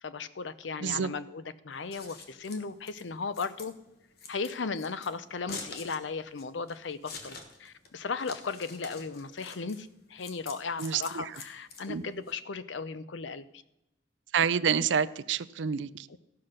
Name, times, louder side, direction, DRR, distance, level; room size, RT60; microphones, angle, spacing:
voice 1, 0.0-3.7 4.3-13.4 16.1-16.2, left 4 dB, 80° left, 14 dB, 0.6 m, -36 dB
Scissors, 1.7-12.3, left 4 dB, 55° left, 1.4 m, -46 dB
voice 2, 10.8-11.2 11.9-12.0 14.3-16.1, right 7 dB, 80° right, 17 dB, 0.4 m, -28 dB
14.0 x 5.8 x 6.5 m, 0.86 s
head